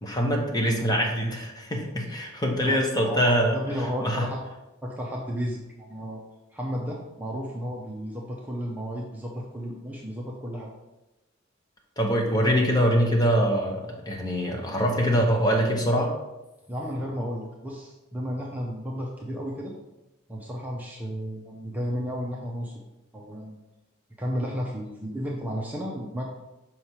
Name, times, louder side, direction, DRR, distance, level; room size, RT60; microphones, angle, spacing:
voice 1, 0.0-3.6 4.0-4.3 12.0-16.1, equal, 20° left, 1 dB, 0.9 m, -24 dB
voice 2, 2.6-4.4 4.8-6.2 6.5-10.7 16.7-19.7 20.3-22.7 23.1-23.6 24.2-26.2, equal, 10° right, -2 dB, 0.6 m, -33 dB
5.6 x 3.2 x 5.6 m, 0.98 s
head